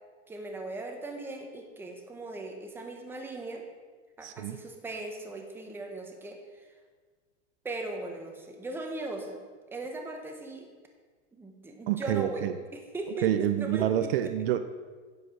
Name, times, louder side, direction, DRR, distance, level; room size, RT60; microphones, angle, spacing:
voice 1, 0.3-3.6 4.2-6.6 7.6-9.4 9.7-10.7 11.3-14.3, right 2 dB, 5° right, 3 dB, 0.9 m, -38 dB
voice 2, 4.2-4.6 11.9-12.5 13.2-14.6, right 12 dB, 55° right, 10 dB, 0.6 m, -27 dB
9.7 x 5.0 x 6.3 m, 1.5 s
supercardioid pair, 145°, 35 cm